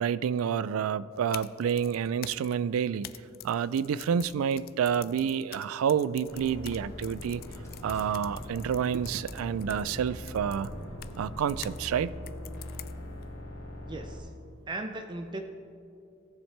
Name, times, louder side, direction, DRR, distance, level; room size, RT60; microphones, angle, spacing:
voice 1, 0.0-3.1 3.4-7.4 7.8-10.7 11.2-12.1, right 7 dB, 80° right, 17 dB, 0.3 m, -29 dB
sound 1, 1.1-11.8 12.3-13.2, left 13 dB, 45° left, 0.3 m, -47 dB
Dog, 6.2-10.4, equal, 15° left, 1.2 m, -54 dB
sound 2, 6.3-14.2, left 1 dB, 90° left, 2.2 m, -41 dB
voice 2, 13.9-14.3 14.7-15.4, right 2 dB, 20° right, 5 dB, 0.5 m, -37 dB
17.5 x 7.2 x 3.3 m, 2.6 s
head